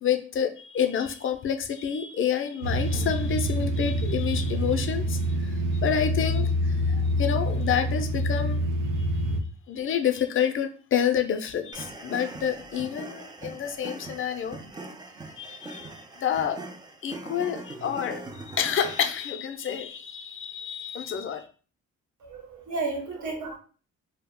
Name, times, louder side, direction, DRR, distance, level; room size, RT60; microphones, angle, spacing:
voice 1, 0.0-8.6 9.7-14.6 15.4-15.9 16.2-16.6 17.0-21.5, left 8 dB, 45° left, 0.5 m, -28 dB
sound 1, 2.6-9.4, equal, 85° right, 0.5 m, -26 dB
sound 2, 11.7-19.3, right 2 dB, 15° right, 0.3 m, -41 dB
voice 2, 22.2-23.6, right 3 dB, 70° right, 1.0 m, -32 dB
2.3 x 2.1 x 3.6 m
cardioid pair, 90°, 30 cm